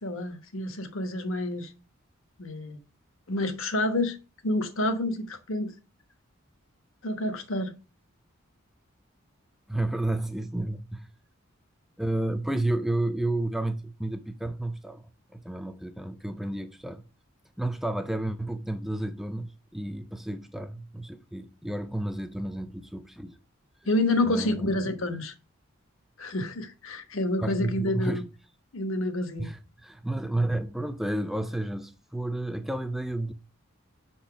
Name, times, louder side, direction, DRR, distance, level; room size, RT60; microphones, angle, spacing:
voice 1, 0.0-1.7 2.4-2.8 3.3-4.2 4.4-5.7 7.0-7.7 23.9-25.3 26.2-28.2 28.7-29.5, left 1 dB, 75° left, 1.2 m, -28 dB
voice 2, 9.7-11.1 12.0-17.0 17.6-23.4 23.8-23.9 24.3-24.8 27.4-28.3 29.4-33.3, right 1 dB, ahead, 0.3 m, -31 dB
5.7 x 4.3 x 5.8 m
head